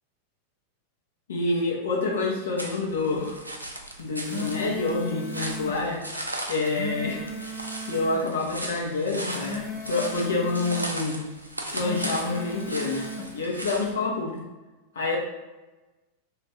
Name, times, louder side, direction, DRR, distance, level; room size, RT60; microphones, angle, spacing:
voice 1, 1.3-3.4 4.0-6.0 6.5-7.4 7.8-11.2 11.7-14.4 14.9-15.2, left 3 dB, 65° left, -2 dB, 0.7 m, -27 dB
sound 1, 2.6-13.9, right 1 dB, 85° right, 0.4 m, -37 dB
sound 2, 4.0-5.8 6.5-8.3 9.1-10.9 11.6-13.3, equal, 25° left, 0.5 m, -37 dB
2.5 x 2.4 x 3.3 m, 1.1 s
figure-of-eight pair, 90°, 0 cm